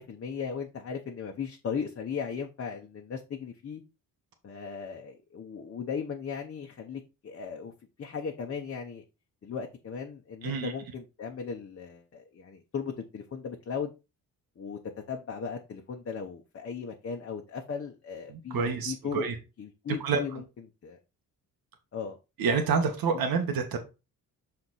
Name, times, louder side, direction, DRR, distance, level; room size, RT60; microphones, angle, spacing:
voice 1, 0.0-3.8 4.4-7.7 8.0-9.0 9.4-13.9 14.6-14.8 15.1-19.3 19.6-20.4 20.8-21.0 21.9-22.2, left 6 dB, 40° left, 2 dB, 0.9 m, -37 dB
voice 2, 10.4-10.7 18.3-19.4 20.0-20.4 22.4-23.8, right 5 dB, 90° right, 5 dB, 1.6 m, -28 dB
6.3 x 4.3 x 4.1 m, 0.28 s
cardioid pair, 130°, 35 cm